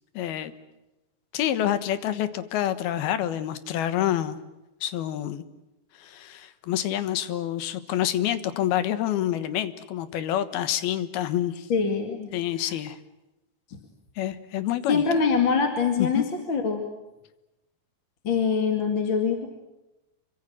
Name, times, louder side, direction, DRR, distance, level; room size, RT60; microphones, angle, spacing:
voice 1, 0.1-0.5 1.3-4.4 4.8-5.4 6.0-11.7 12.3-13.0 14.2-15.1 16.0-16.2, left 11 dB, 75° left, 12 dB, 3.2 m, -27 dB
voice 2, 11.7-12.3 14.9-16.8 18.2-19.5, left 5 dB, 35° left, 4 dB, 2.5 m, -24 dB
28.0 x 24.5 x 7.5 m, 0.98 s
omnidirectional pair, 4.5 m